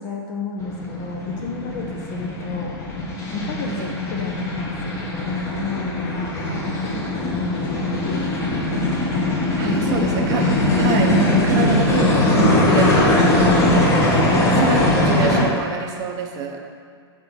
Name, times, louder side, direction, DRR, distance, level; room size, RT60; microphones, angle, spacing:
voice 1, 0.0-2.7 3.3-8.2 9.6-10.8, left 4 dB, 40° left, 0 dB, 0.9 m, -32 dB
sound 1, 0.6-15.4, left 1 dB, 20° left, 1.2 m, -20 dB
voice 2, 3.6-4.0 9.6-10.5 10.8-13.5 13.7-16.6, right 5 dB, 25° right, 2 dB, 0.7 m, -26 dB
7.4 x 4.3 x 4.4 m, 2.1 s
hypercardioid pair, 145°, 14 cm